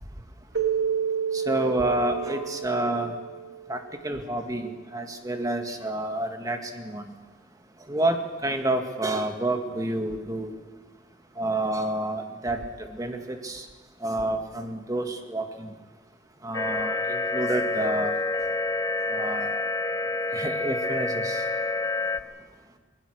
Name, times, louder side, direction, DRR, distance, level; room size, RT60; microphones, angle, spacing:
Keyboard (musical), 0.5-3.7, right 7 dB, 65° right, 2.2 m, -29 dB
voice 1, 1.3-3.1 3.7-7.1 7.9-10.5 11.4-12.6 13.0-13.7 14.0-15.7 16.4-18.1 19.1-19.6 20.3-21.4, right 1 dB, 20° right, 5 dB, 1.9 m, -29 dB
sound 1, 16.5-22.2, left 3 dB, 20° left, 0.8 m, -28 dB
23.0 x 21.0 x 6.5 m, 1.3 s
head